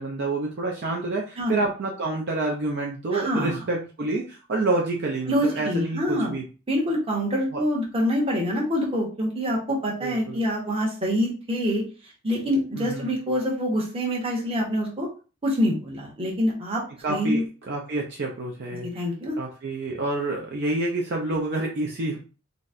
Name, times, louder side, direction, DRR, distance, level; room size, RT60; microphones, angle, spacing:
voice 1, 0.0-6.4 7.5-7.6 10.0-10.4 12.8-13.1 17.0-19.1 19.4-22.2, right 2 dB, 50° right, -1 dB, 0.5 m, -28 dB
voice 2, 3.1-3.6 5.3-6.4 6.7-11.8 12.2-15.1 15.4-16.8 17.1-17.4 18.8-19.3, equal, 25° right, -3 dB, 0.9 m, -25 dB
4.0 x 2.1 x 2.5 m, 0.35 s
head